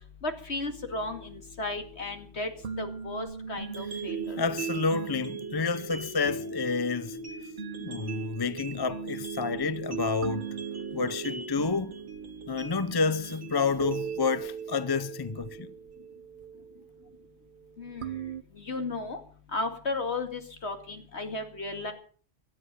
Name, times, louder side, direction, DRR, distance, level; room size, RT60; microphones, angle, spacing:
voice 1, 0.2-2.5 2.8-4.4 17.8-18.1 18.6-19.2 19.5-21.9, left 2 dB, 60° left, 2.5 m, -34 dB
sound 1, 0.7-18.4, right 6 dB, 45° right, 0.9 m, -43 dB
sound 2, 3.6-15.6, right 5 dB, 70° right, 2.6 m, -39 dB
voice 2, 4.4-7.2 7.8-10.5 10.9-11.9 12.5-15.7, left 4 dB, 25° left, 0.6 m, -29 dB
17.5 x 12.0 x 5.3 m
omnidirectional pair, 1.3 m